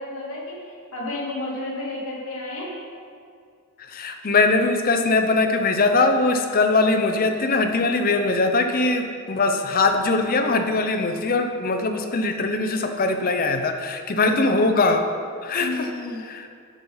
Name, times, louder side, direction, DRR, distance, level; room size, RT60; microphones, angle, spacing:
voice 1, 0.0-2.7 14.5-14.6 15.6-16.2, left 2 dB, 70° left, -5 dB, 2.6 m, -31 dB
voice 2, 3.9-15.0 15.4-15.9 16.3-16.5, left 3 dB, 40° left, 6 dB, 0.7 m, -21 dB
10.0 x 5.6 x 5.5 m, 2.3 s
head